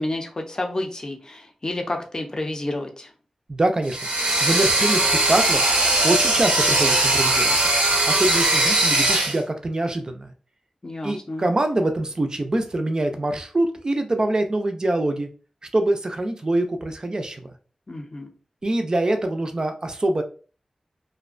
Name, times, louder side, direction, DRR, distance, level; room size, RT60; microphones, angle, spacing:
voice 1, 0.0-3.1 10.8-11.4 17.9-18.3, left 2 dB, 35° left, 3 dB, 0.5 m, -30 dB
voice 2, 3.5-4.0 4.4-5.7 6.0-7.6 8.1-10.3 11.0-15.3 15.7-17.5 18.6-20.2, right 1 dB, 35° right, 6 dB, 0.4 m, -24 dB
sound 1, 3.9-9.4, right 2 dB, 85° right, 0.6 m, -20 dB
2.4 x 2.1 x 2.4 m, 0.38 s
wide cardioid pair, 85°, 2 cm